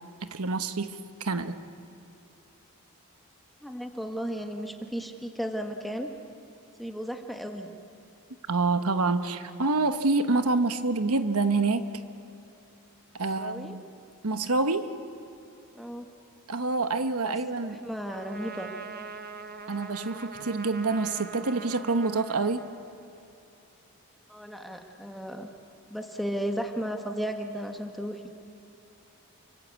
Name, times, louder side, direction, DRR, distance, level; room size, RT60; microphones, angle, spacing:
voice 1, 0.2-1.6 8.5-11.8 13.1-13.8 14.2-14.9 16.5-17.8 19.7-22.6, right 3 dB, 80° right, 9 dB, 1.1 m, -27 dB
voice 2, 3.6-6.1 6.8-7.7 13.4-13.8 15.7-16.1 17.3-17.4 17.6-18.7 24.3-25.5 25.9-28.3, equal, ahead, 4 dB, 1.4 m, -34 dB
Trumpet, 18.1-23.3, right 4 dB, 45° right, 1.2 m, -42 dB
29.0 x 24.5 x 8.3 m, 2.8 s
head